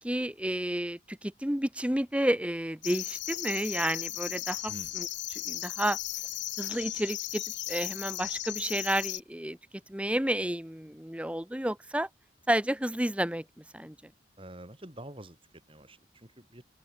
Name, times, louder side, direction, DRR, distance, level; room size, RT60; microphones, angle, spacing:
voice 1, 0.0-6.0 6.6-9.6 9.9-12.1 12.5-13.4 13.7-13.9, right 1 dB, 5° right, 1.1 m, -31 dB
sound 1, 2.8-9.2, left 14 dB, 75° left, 2.1 m, -36 dB
voice 2, 14.4-16.6, right 1 dB, 30° right, 4.2 m, -47 dB
open air
head